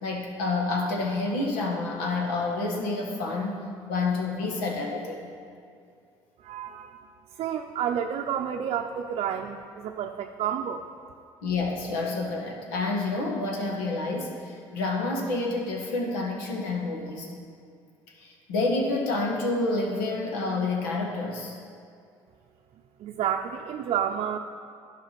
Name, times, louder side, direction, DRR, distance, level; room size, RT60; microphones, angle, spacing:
voice 1, 0.0-5.3 11.4-17.3 18.2-21.5, left 3 dB, 85° left, 1 dB, 1.5 m, -29 dB
voice 2, 6.4-7.0 7.4-10.8 23.0-24.4, right 9 dB, 60° right, 3 dB, 0.6 m, -30 dB
11.5 x 4.9 x 5.9 m, 2.3 s
supercardioid pair, 65°, 11 cm